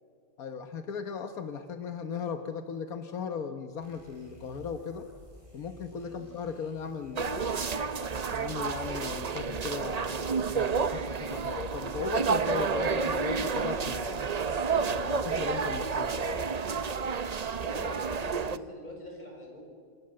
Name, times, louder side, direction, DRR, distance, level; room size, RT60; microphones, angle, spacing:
voice 1, 0.4-5.1 5.5-7.7 8.3-14.2 14.8-16.5, left 6 dB, 80° left, 7 dB, 1.6 m, -37 dB
sound 1, 3.8-10.0, equal, 20° right, 7.8 m, -55 dB
sound 2, 7.2-18.6, right 5 dB, 40° right, 0.6 m, -30 dB
voice 2, 17.6-19.6, left 1 dB, 30° left, 1 dB, 7.1 m, -43 dB
28.0 x 27.0 x 7.7 m, 2.3 s
omnidirectional pair, 1.5 m